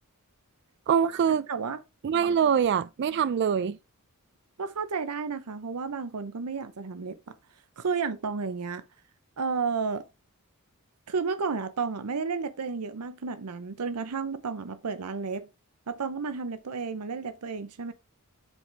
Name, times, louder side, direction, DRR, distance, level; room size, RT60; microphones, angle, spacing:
voice 1, 0.9-1.4 2.0-3.8, right 7 dB, 50° right, 0.3 m, -24 dB
voice 2, 1.5-1.8 4.6-7.3 7.8-8.8 9.4-10.0 11.1-15.5 15.9-17.9, right 5 dB, 85° right, 0.7 m, -32 dB
7.6 x 6.2 x 3.3 m
head